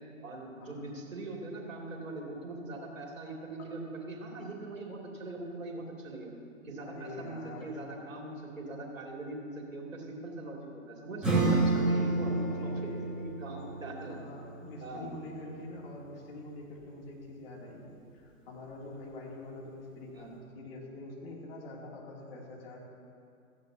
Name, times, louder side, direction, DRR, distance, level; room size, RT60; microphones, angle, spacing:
voice 1, 0.2-6.3 6.6-14.2 14.8-15.0 20.2-20.3, right 2 dB, 65° right, -1 dB, 2.9 m, -41 dB
voice 2, 6.8-7.8 11.9-13.1 13.7-17.9 18.1-22.8, left 2 dB, 45° left, -3 dB, 3.0 m, -45 dB
Acoustic guitar / Strum, 11.2-16.4, right 2 dB, ahead, 2.8 m, -31 dB
16.5 x 14.0 x 2.9 m, 2.5 s
figure-of-eight pair, 120°, 42 cm